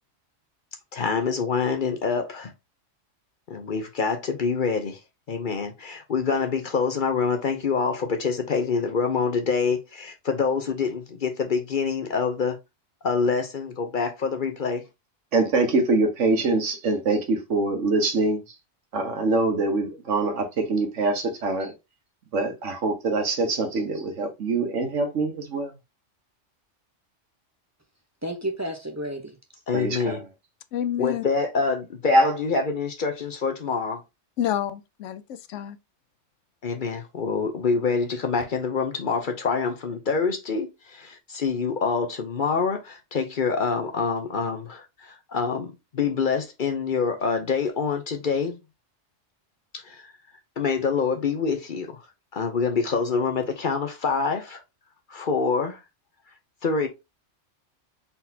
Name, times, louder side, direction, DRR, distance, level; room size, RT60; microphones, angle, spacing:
voice 1, 0.9-2.5 3.5-5.0 5.3-12.6 13.0-14.8 15.6-15.8 16.2-16.6 16.9-17.2 17.6-17.7 18.0-18.1 29.7-30.2 31.0-34.0 36.6-48.6 49.7-50.1 50.6-52.0 52.3-54.6 55.1-55.8 56.6-56.9, left 5 dB, 50° left, 0.8 m, -26 dB
voice 2, 15.3-18.4 18.9-21.7 22.3-25.7 29.7-30.2 31.3-31.5 32.1-32.3, right 3 dB, 80° right, 1.5 m, -24 dB
voice 3, 28.2-29.4, right 1 dB, 15° right, 0.7 m, -31 dB
voice 4, 30.7-31.2 34.4-35.8, left 10 dB, 80° left, 0.9 m, -28 dB
4.2 x 3.9 x 2.7 m
omnidirectional pair, 1.3 m